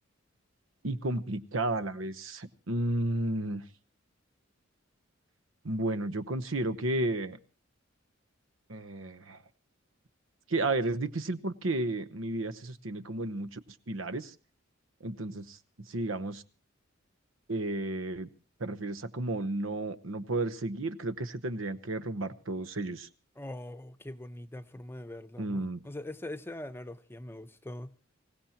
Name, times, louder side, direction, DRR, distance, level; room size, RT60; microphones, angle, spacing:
voice 1, 0.8-3.6 5.6-7.4 8.7-9.4 10.5-13.6 13.9-14.3 15.0-16.4 17.5-18.3 18.6-23.1 25.4-25.8, right 2 dB, 85° right, 1.0 m, -32 dB
voice 2, 23.4-27.9, left 1 dB, 10° left, 0.7 m, -42 dB
26.0 x 16.5 x 2.9 m
head